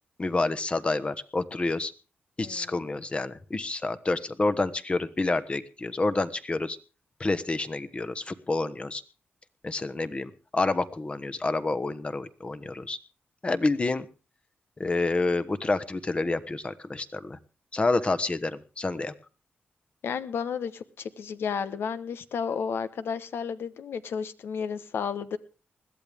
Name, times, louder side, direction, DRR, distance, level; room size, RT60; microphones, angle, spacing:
voice 1, 0.2-1.9 2.4-6.8 7.2-9.0 9.6-13.0 13.4-14.1 14.8-17.4 17.7-19.1, left 3 dB, 30° left, 12 dB, 1.2 m, -28 dB
voice 2, 2.4-2.8 20.0-25.4, left 6 dB, 85° left, 13 dB, 1.1 m, -32 dB
20.5 x 14.0 x 3.6 m, 0.33 s
cardioid pair, 95°, 4 cm